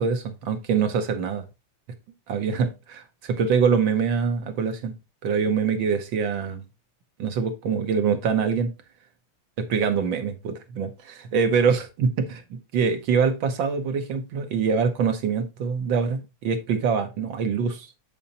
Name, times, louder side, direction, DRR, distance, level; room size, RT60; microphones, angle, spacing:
voice 1, 0.0-1.4 2.3-4.9 5.2-6.6 7.2-8.7 9.6-17.9, right 6 dB, 65° right, 1.6 m, -24 dB
7.7 x 7.1 x 2.8 m
omnidirectional pair, 2.4 m